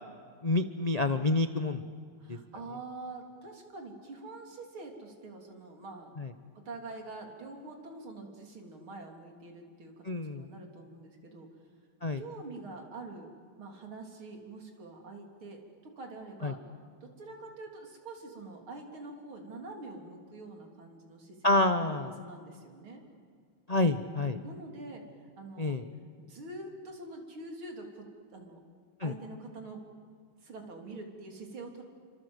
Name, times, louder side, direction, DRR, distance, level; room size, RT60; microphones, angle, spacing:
voice 1, 0.4-1.8 2.3-2.4 6.2-6.3 10.0-10.5 12.0-12.2 16.4-16.5 21.4-22.1 23.7-24.4 25.6-25.8 29.0-29.1, left 2 dB, 75° left, 8 dB, 0.3 m, -28 dB
voice 2, 2.2-6.1 6.5-11.5 12.2-13.3 13.6-16.6 17.0-23.0 24.4-25.0 25.4-25.8 26.2-28.1 28.3-28.6 29.0-29.8 30.4-31.8, right 2 dB, 75° right, 2 dB, 4.2 m, -45 dB
29.0 x 25.0 x 8.1 m, 2.1 s
omnidirectional pair, 2.3 m